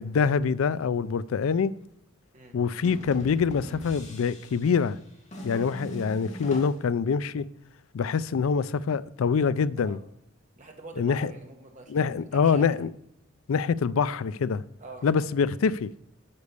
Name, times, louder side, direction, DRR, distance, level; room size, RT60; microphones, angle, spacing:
voice 1, 0.0-1.7 2.5-5.0 5.4-7.5 7.9-10.0 11.0-11.3 11.9-12.9 13.5-14.6 15.0-15.9, left 6 dB, 80° left, 0.4 m, -25 dB
sound 1, 2.8-6.9, equal, 35° left, 2.0 m, -42 dB
voice 2, 10.6-12.8 14.8-15.1, right 3 dB, 35° right, 1.6 m, -45 dB
9.7 x 5.3 x 6.8 m
head